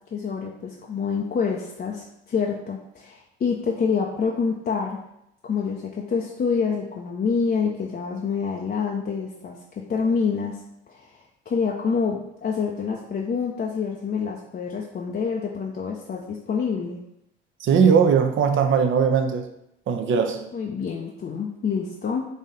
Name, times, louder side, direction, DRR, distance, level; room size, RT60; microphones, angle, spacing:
voice 1, 0.1-5.0 5.4-9.6 9.9-10.6 10.9-11.1 11.5-17.0 20.5-22.3, left 5 dB, 30° left, 0.6 m, -27 dB
voice 2, 17.6-19.5 19.9-20.5, right 6 dB, 40° right, 0.6 m, -19 dB
4.1 x 2.6 x 4.0 m
hypercardioid pair, 55°, 30 cm